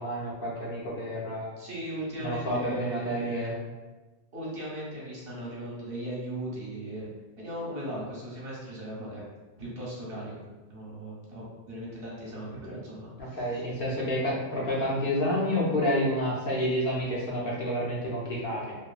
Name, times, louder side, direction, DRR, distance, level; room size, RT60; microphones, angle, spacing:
voice 1, 0.0-1.5 2.2-3.6 13.2-18.8, equal, 60° left, -4 dB, 0.7 m, -29 dB
voice 2, 1.6-3.5 4.3-7.1 7.4-9.2 9.6-13.6, right 1 dB, 60° right, -6 dB, 1.0 m, -38 dB
2.8 x 2.3 x 2.3 m, 1.2 s
omnidirectional pair, 1.2 m